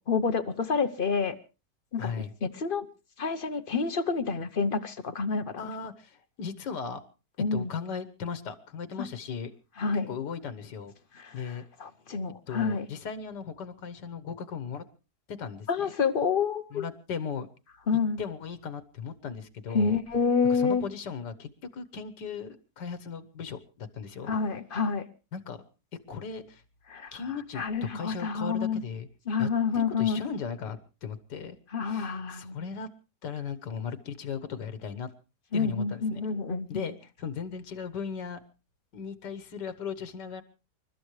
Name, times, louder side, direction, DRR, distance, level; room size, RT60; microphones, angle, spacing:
voice 1, 0.1-1.4 1.9-2.1 2.4-2.9 3.2-5.6 7.4-7.7 9.8-10.1 11.1-12.9 15.7-16.8 17.9-18.2 19.7-20.8 24.2-25.0 26.9-27.2 27.5-28.8 29.3-30.2 31.7-32.6 35.5-36.8, left 5 dB, 40° left, 0.8 m, -28 dB
voice 2, 2.0-2.3 5.6-7.0 7.5-9.5 10.1-10.9 11.3-11.7 12.5-14.8 15.3-15.9 16.7-17.5 18.2-20.0 20.5-24.3 25.3-25.6 26.1-26.6 27.1-27.6 27.9-29.1 29.4-29.5 29.7-31.6 31.8-32.9 33.2-35.1 35.5-36.3 36.7-38.4 38.9-40.4, left 6 dB, 90° left, 1.9 m, -37 dB
28.5 x 12.5 x 3.2 m
omnidirectional pair, 1.8 m